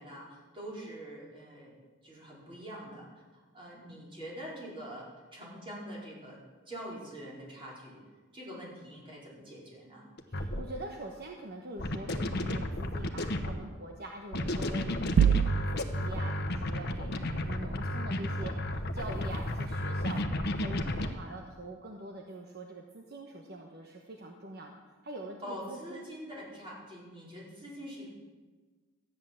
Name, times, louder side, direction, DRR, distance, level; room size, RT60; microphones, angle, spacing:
voice 1, 0.0-1.7 2.0-3.1 3.3-6.4 6.7-8.0 8.3-10.1 17.1-17.5 25.4-28.1, equal, 25° right, -5 dB, 4.6 m, -44 dB
sound 1, 10.2-10.6 11.8-13.6 14.3-21.1, left 1 dB, 55° left, 1.1 m, -33 dB
voice 2, 10.3-17.1 17.4-26.1, right 1 dB, 55° right, 2 dB, 1.1 m, -44 dB
sound 2, 15.2-16.1, right 8 dB, 75° right, 0.3 m, -24 dB
13.5 x 9.4 x 7.6 m, 1.4 s
head